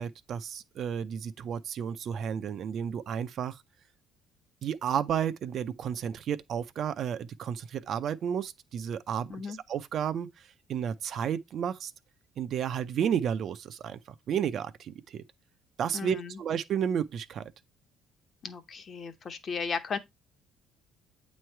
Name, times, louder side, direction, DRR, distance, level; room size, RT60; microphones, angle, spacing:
voice 1, 0.0-3.6 4.6-10.3 10.7-11.9 12.4-14.0 14.3-15.2 15.8-17.5, right 8 dB, 45° right, 0.5 m, -32 dB
voice 2, 15.9-16.4 18.4-20.0, left 5 dB, 35° left, 0.8 m, -35 dB
8.6 x 3.2 x 4.5 m
cardioid pair, 155°, 0 cm